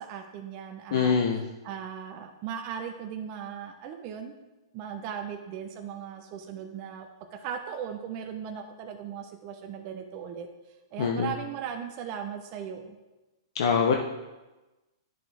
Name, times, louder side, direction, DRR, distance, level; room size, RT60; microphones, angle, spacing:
voice 1, 0.0-1.2 1.6-4.4 4.7-10.5 10.9-13.0, right 8 dB, 40° right, 4 dB, 0.9 m, -38 dB
voice 2, 0.9-1.4 11.0-11.3 13.5-14.0, left 6 dB, 65° left, 2 dB, 0.8 m, -24 dB
10.5 x 6.1 x 3.5 m, 1.1 s
hypercardioid pair, 125°, 3 cm